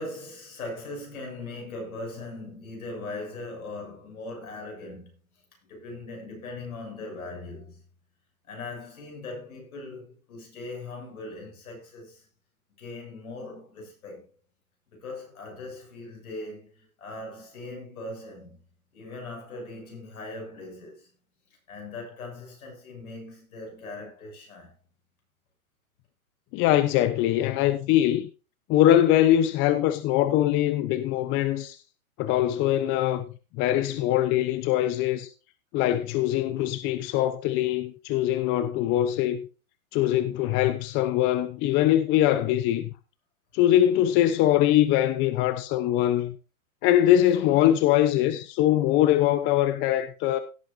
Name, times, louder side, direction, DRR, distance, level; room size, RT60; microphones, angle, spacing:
voice 1, 0.0-7.8 8.5-12.3 12.8-14.3 14.9-18.6 18.9-21.1 21.7-24.8, left 2 dB, 75° left, 7.1 m, -40 dB
voice 2, 26.5-28.3 28.7-31.8 32.2-33.2 33.5-35.3 35.7-39.4 39.9-42.9 43.5-46.3 46.8-50.4, left 12 dB, 25° left, 0.8 m, -22 dB
17.5 x 8.2 x 2.7 m
hypercardioid pair, 130°, 43 cm